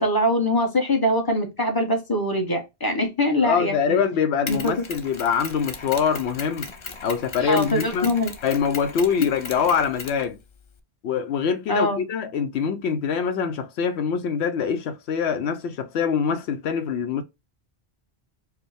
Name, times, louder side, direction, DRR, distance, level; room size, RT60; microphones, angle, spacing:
voice 1, 0.0-4.0 4.4-4.6 7.4-8.3 11.7-12.0, left 1 dB, 20° left, 0.9 m, -23 dB
voice 2, 3.4-6.7 7.0-8.1 8.4-10.4 11.0-17.2, left 6 dB, 80° left, 0.9 m, -24 dB
Mechanisms, 4.5-10.8, left 4 dB, 35° left, 0.5 m, -38 dB
4.8 x 2.1 x 3.3 m
omnidirectional pair, 1.1 m